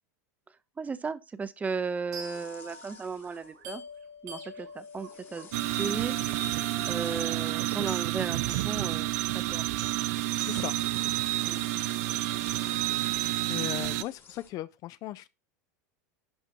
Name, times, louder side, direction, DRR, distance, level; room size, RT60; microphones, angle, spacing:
voice 1, 0.8-3.8 4.2-5.5 5.8-6.1 6.9-9.9 11.4-11.6, right 5 dB, 15° right, 0.6 m, -35 dB
sound 1, 2.1-12.1, right 5 dB, 85° right, 4.6 m, -44 dB
sound 2, 2.2-3.9 4.7-14.5, left 5 dB, 25° left, 1.1 m, -50 dB
sound 3, 5.5-14.0, right 17 dB, 65° right, 0.5 m, -30 dB
voice 2, 10.4-10.7 13.5-15.3, left 15 dB, 40° left, 0.4 m, -37 dB
11.0 x 4.5 x 2.7 m
supercardioid pair, 120°, 9 cm